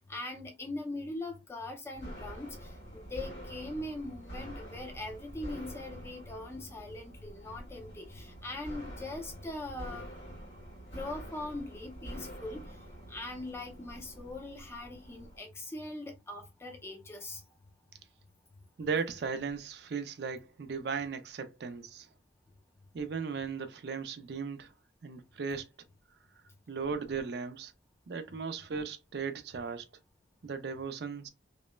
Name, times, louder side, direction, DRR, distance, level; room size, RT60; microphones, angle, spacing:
voice 1, 0.0-10.1 10.9-12.8 13.1-17.4, left 2 dB, 15° left, 0.5 m, -41 dB
sound 1, 1.9-15.4, equal, 65° left, 1.3 m, -46 dB
voice 2, 18.8-22.1 22.9-24.7 25.0-25.7 26.7-27.7 28.1-29.9 30.4-31.3, right 5 dB, 60° right, 0.4 m, -36 dB
3.0 x 2.0 x 2.2 m
head